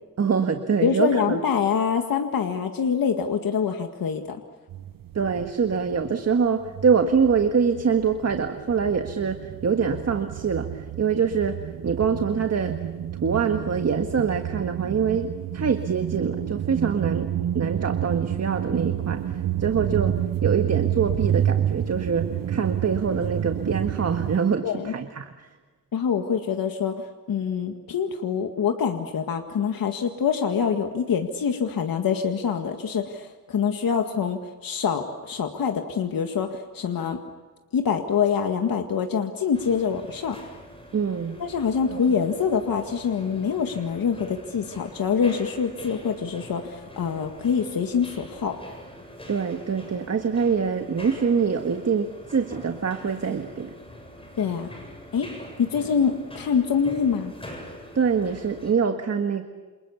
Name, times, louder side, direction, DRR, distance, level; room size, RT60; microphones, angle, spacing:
voice 1, 0.2-1.4 5.2-12.8 13.2-19.2 19.6-25.3 40.9-41.4 41.9-42.0 49.3-53.7 58.0-59.4, right 6 dB, 50° right, 6 dB, 1.7 m, -24 dB
voice 2, 0.8-4.4 24.6-24.9 25.9-37.2 37.7-40.4 41.4-48.6 54.4-54.7 55.1-55.3 55.6-57.3, left 6 dB, 85° left, 4 dB, 1.9 m, -25 dB
sound 1, 4.7-6.3 6.6-24.4, right 11 dB, 75° right, 0.9 m, -29 dB
sound 2, 39.5-58.7, equal, 15° left, 7.6 m, -44 dB
29.0 x 28.0 x 7.2 m, 1.3 s
wide cardioid pair, 125°, 34 cm